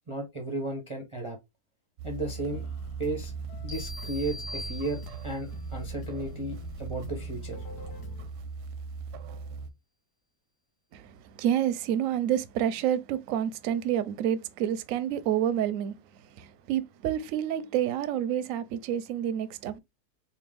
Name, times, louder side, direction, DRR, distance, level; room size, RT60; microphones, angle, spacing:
voice 1, 0.1-1.4 2.0-2.7 3.0-3.3 3.6-7.6, right 2 dB, 35° right, 0.5 m, -34 dB
sound 1, 2.0-9.7, right 4 dB, 90° right, 1.1 m, -39 dB
sound 2, 2.2-8.3, right 1 dB, 75° left, 1.3 m, -45 dB
sound 3, 3.7-5.5, left 1 dB, 60° left, 1.6 m, -42 dB
voice 2, 10.9-19.8, right 10 dB, 70° right, 0.9 m, -29 dB
3.3 x 2.8 x 3.3 m
omnidirectional pair, 1.7 m